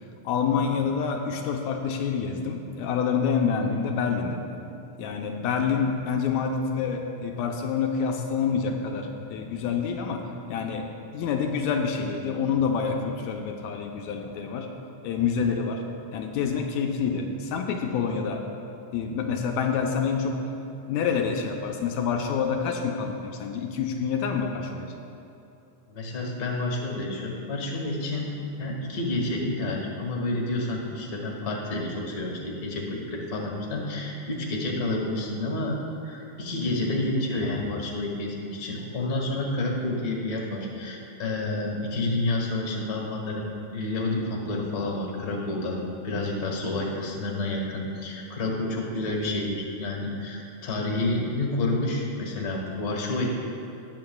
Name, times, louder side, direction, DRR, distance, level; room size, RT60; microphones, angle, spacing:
voice 1, 0.2-4.4 5.0-14.7 15.0-15.8 16.1-18.4 18.9-20.5 20.9-24.9, left 6 dB, 85° left, 2 dB, 1.9 m, -27 dB
voice 2, 25.9-28.3 28.6-35.7 36.0-43.5 43.7-45.8 46.0-53.3, left 2 dB, 40° left, -2 dB, 1.6 m, -29 dB
19.0 x 7.5 x 2.3 m, 2.7 s
omnidirectional pair, 3.3 m